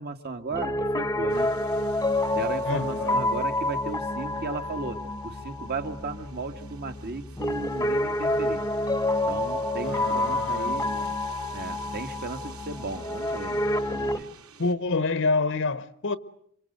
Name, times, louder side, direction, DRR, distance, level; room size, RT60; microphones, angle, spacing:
voice 1, 0.0-1.5 2.3-8.6 9.3-10.9 11.5-13.6 13.9-14.3, right 3 dB, 45° right, 1.9 m, -35 dB
Piano, 0.5-14.2, left 1 dB, 15° left, 1.0 m, -28 dB
sound 1, 1.3-14.7, right 5 dB, 70° right, 4.9 m, -51 dB
voice 2, 2.6-3.2 9.8-11.1 14.6-16.2, left 3 dB, 60° left, 1.0 m, -28 dB
28.5 x 24.0 x 8.1 m
head